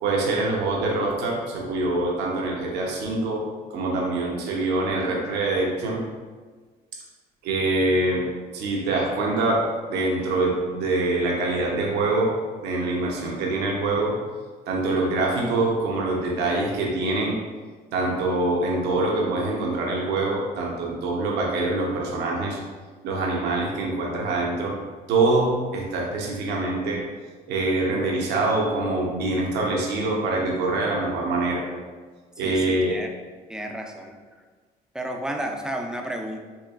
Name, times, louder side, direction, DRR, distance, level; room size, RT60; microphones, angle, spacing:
voice 1, 0.0-3.4 3.7-6.0 7.4-8.3 8.5-12.3 12.6-14.2 14.7-17.4 17.9-22.6 23.0-24.8 25.1-27.0 27.5-31.6 32.4-33.0, right 2 dB, 80° right, -2 dB, 0.8 m, -24 dB
voice 2, 32.4-33.1 33.5-34.2 34.9-36.4, right 1 dB, 5° right, 2 dB, 0.4 m, -32 dB
4.4 x 3.1 x 2.4 m, 1.4 s
cardioid pair, 110°, 17 cm